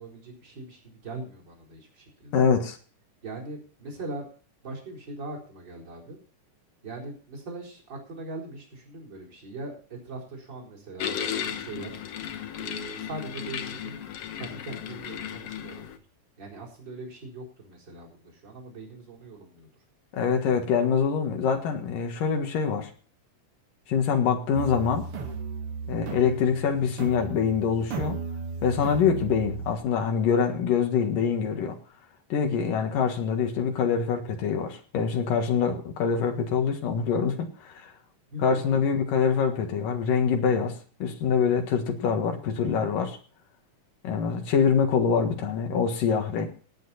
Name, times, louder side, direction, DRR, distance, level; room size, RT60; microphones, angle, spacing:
voice 1, 0.0-2.4 3.2-4.3 4.6-6.2 6.8-12.0 12.6-14.0 14.3-15.9 16.4-19.7 38.3-38.6, right 2 dB, 35° right, -2 dB, 4.6 m, -41 dB
voice 2, 2.3-2.8 20.1-22.9 23.9-25.1 25.9-28.2 28.6-31.8 32.3-37.9 38.4-43.2 44.0-46.5, left 6 dB, 90° left, 4 dB, 3.4 m, -25 dB
sound 1, 11.0-16.0, left 9 dB, 60° left, 1.8 m, -35 dB
sound 2, 24.5-29.8, right 4 dB, 50° right, 2.2 m, -35 dB
18.0 x 9.2 x 4.2 m, 0.41 s
omnidirectional pair, 3.7 m